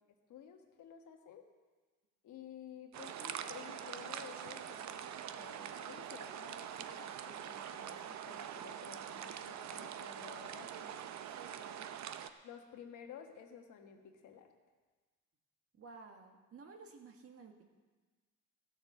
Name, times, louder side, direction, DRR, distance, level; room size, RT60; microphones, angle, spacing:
voice 1, 0.3-1.4 2.2-10.9 12.4-14.5, left 8 dB, 80° left, 4 dB, 1.5 m, -53 dB
sound 1, 2.9-12.3, right 9 dB, 65° right, 0.7 m, -44 dB
voice 2, 11.3-11.9 15.7-17.7, right 4 dB, 50° right, 4 dB, 1.6 m, -54 dB
14.5 x 6.7 x 6.8 m, 1.3 s
cardioid pair, 90°, 30 cm